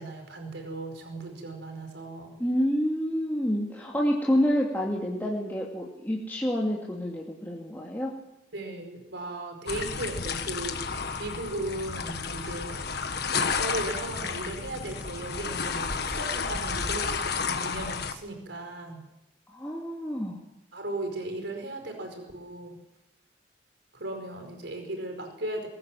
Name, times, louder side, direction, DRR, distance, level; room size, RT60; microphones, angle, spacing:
voice 1, 0.0-2.4 8.5-12.9 13.3-19.0 20.7-22.8 23.9-25.7, right 2 dB, 65° right, 5 dB, 5.1 m, -37 dB
voice 2, 2.4-8.1 19.5-20.4, equal, 10° left, -4 dB, 2.5 m, -28 dB
sound 1, 9.7-18.1, left 5 dB, 55° left, 1.5 m, -32 dB
sound 2, 14.9-15.1 15.6-17.2, equal, 10° right, 1.7 m, -39 dB
21.5 x 18.5 x 7.7 m, 0.89 s
head